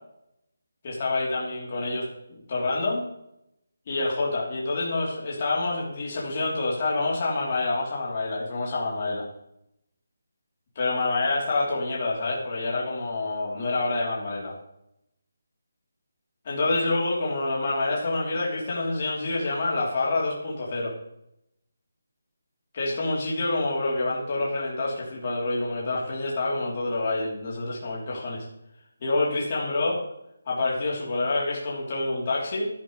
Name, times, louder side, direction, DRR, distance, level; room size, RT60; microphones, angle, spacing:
voice 1, 0.8-3.0 3.9-9.3 10.7-14.5 16.4-20.9 22.7-28.4 29.0-30.0 30.5-32.7, left 2 dB, 35° left, -4 dB, 3.5 m, -27 dB
15.0 x 11.5 x 3.3 m, 0.80 s
figure-of-eight pair, 165°, 0 cm